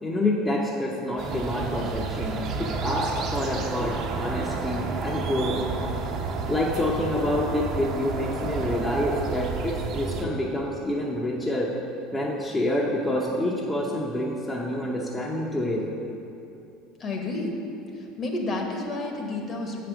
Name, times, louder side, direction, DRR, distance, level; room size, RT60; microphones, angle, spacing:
voice 1, 0.0-5.6 6.5-11.7 12.1-15.9, left 1 dB, 15° left, -3 dB, 0.8 m, -27 dB
sound 1, 1.2-10.2, right 4 dB, 60° right, 1.1 m, -30 dB
voice 2, 17.0-17.5 18.2-19.9, left 2 dB, 40° left, 2 dB, 1.2 m, -30 dB
7.2 x 5.1 x 6.1 m, 2.8 s
supercardioid pair, 105°, 0 cm